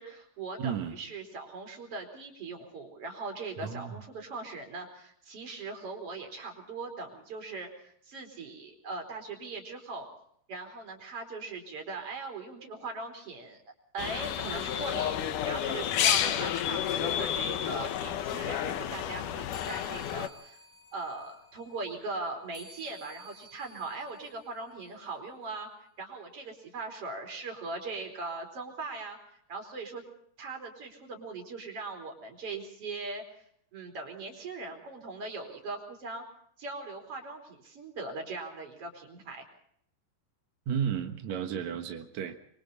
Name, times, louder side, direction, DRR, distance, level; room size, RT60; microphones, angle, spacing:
voice 1, 0.0-10.1 10.5-13.6 13.9-20.6 20.9-25.7 26.0-29.2 29.5-30.0 30.4-33.2 33.7-36.2 36.6-39.4, right 3 dB, 30° right, 4 dB, 4.9 m, -40 dB
voice 2, 0.6-1.0 3.6-4.0 40.7-42.4, right 8 dB, 70° right, 5 dB, 1.7 m, -33 dB
sound 1, 14.0-20.3, left 10 dB, 80° left, 1.8 m, -30 dB
sound 2, 19.5-25.3, left 1 dB, 20° left, 4.7 m, -54 dB
26.0 x 24.0 x 4.2 m, 0.66 s
omnidirectional pair, 5.3 m